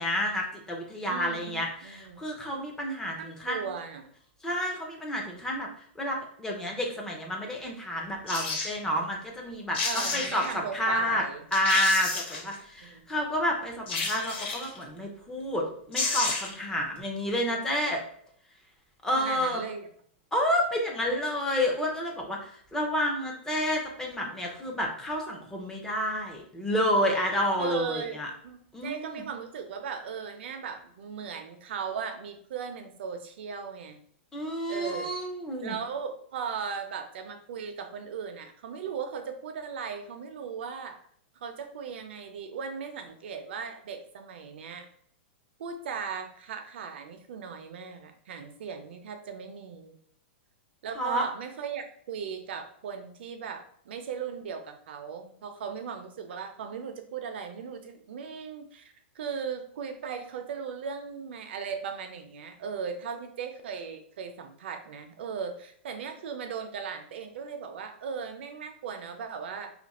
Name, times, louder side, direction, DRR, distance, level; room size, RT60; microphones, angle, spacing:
voice 1, 0.0-3.7 4.4-5.7 6.0-11.2 11.5-18.0 19.0-19.6 20.3-28.3 28.7-29.2 34.3-35.8 51.0-51.3, equal, 10° left, 1 dB, 0.6 m, -30 dB
voice 2, 1.1-2.2 3.2-4.0 9.8-11.4 12.8-13.1 19.2-19.9 27.6-28.2 28.4-34.0 34.7-35.2 35.6-41.0 41.3-44.9 45.6-49.9 50.8-69.7, right 6 dB, 65° right, 6 dB, 0.6 m, -37 dB
sound 1, 8.3-8.7 9.5-9.6 9.7-10.5 11.1-11.2 11.5-12.5 13.9-14.8 15.6-15.7 15.9-16.6 17.0-17.1, left 3 dB, 70° left, 1.2 m, -31 dB
2.7 x 2.5 x 4.1 m, 0.62 s
hypercardioid pair, 155°, 6 cm